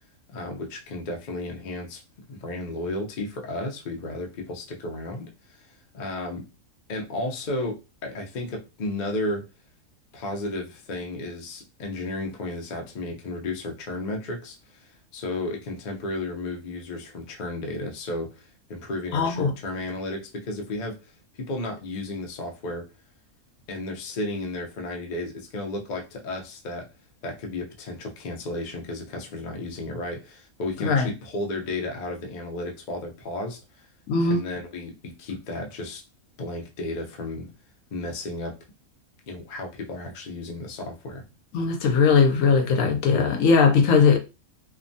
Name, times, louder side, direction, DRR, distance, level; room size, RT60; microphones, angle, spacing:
voice 1, 0.3-2.0 2.3-5.7 5.9-6.4 6.9-7.8 8.0-9.4 10.1-14.8 15.1-21.0 21.5-22.9 23.7-26.9 27.2-33.6 34.2-36.0 36.4-37.5 37.9-38.5 39.3-41.2, left 2 dB, 50° left, 0.6 m, -33 dB
voice 2, 19.1-19.5 30.8-31.1 34.1-34.4 41.5-44.2, left 5 dB, 75° left, 1.0 m, -19 dB
2.9 x 2.2 x 2.6 m
omnidirectional pair, 1.4 m